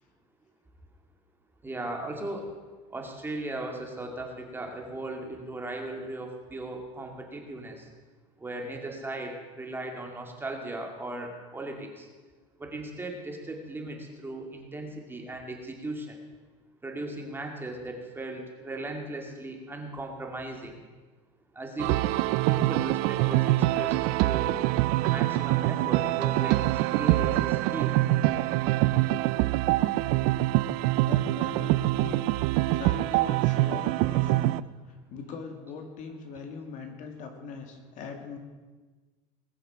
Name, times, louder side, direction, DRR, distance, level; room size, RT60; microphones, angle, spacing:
voice 1, 1.6-2.5 2.9-7.8 8.4-12.1 12.6-16.2 16.8-20.7 21.6-21.9 22.4-24.6 25.1-26.6 26.9-28.6 32.3-32.4, right 2 dB, 15° right, 2 dB, 2.3 m, -37 dB
sound 1, 21.8-34.6, right 17 dB, 70° right, 0.5 m, -25 dB
voice 2, 31.0-32.2 32.7-34.6 34.9-38.4, left 5 dB, 55° left, 4 dB, 2.1 m, -41 dB
20.0 x 6.9 x 6.1 m, 1.3 s
supercardioid pair, 120°, 16 cm